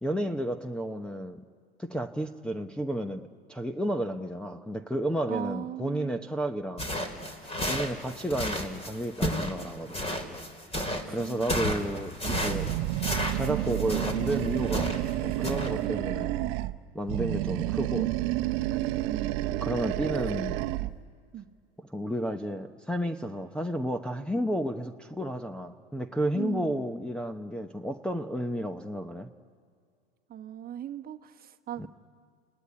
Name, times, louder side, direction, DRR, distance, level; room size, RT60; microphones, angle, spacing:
voice 1, 0.0-1.4 1.8-6.9 7.7-10.0 11.1-12.7 13.3-16.3 16.9-18.1 19.6-20.6 21.9-29.3 31.8-31.9, right 1 dB, 5° left, 1 dB, 0.9 m, -32 dB
voice 2, 5.3-6.3 11.1-11.5 15.8-15.9 19.0-19.4 20.0-20.1 20.5-20.7 21.3-21.5 26.3-26.9 30.3-31.9, right 11 dB, 30° right, 6 dB, 1.4 m, -38 dB
sound 1, 6.8-15.1 15.4-15.7, equal, 20° left, 3.8 m, -32 dB
Animal, 12.2-16.8 17.1-21.0, right 16 dB, 55° right, 0.9 m, -30 dB
29.0 x 18.5 x 10.0 m, 2.3 s
hypercardioid pair, 100°, 31 cm